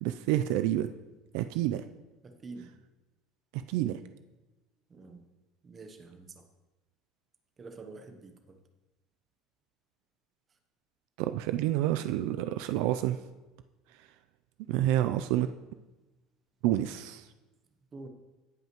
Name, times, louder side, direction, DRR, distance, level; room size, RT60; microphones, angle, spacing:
voice 1, 0.0-0.9 1.3-1.8 3.5-4.0 11.2-13.2 14.7-15.5 16.6-17.3, right 13 dB, 65° right, 10 dB, 0.3 m, -28 dB
voice 2, 2.2-2.7 4.9-5.2 5.6-6.4 7.6-8.6 17.9-18.1, right 3 dB, 20° right, 6 dB, 0.8 m, -47 dB
16.5 x 5.6 x 3.0 m, 1.1 s
cardioid pair, 170°, 0 cm